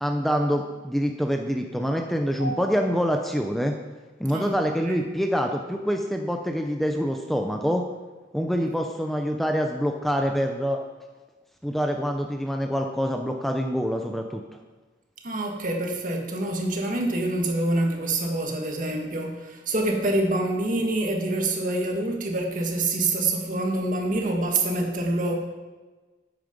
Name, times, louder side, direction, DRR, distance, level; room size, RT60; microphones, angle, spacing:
voice 1, 0.0-3.7 4.2-7.8 8.3-10.8 11.6-14.4, equal, ahead, 3 dB, 0.6 m, -26 dB
voice 2, 4.3-5.0 15.2-25.4, right 2 dB, 50° right, 2 dB, 1.7 m, -26 dB
9.3 x 8.8 x 5.3 m, 1.3 s
head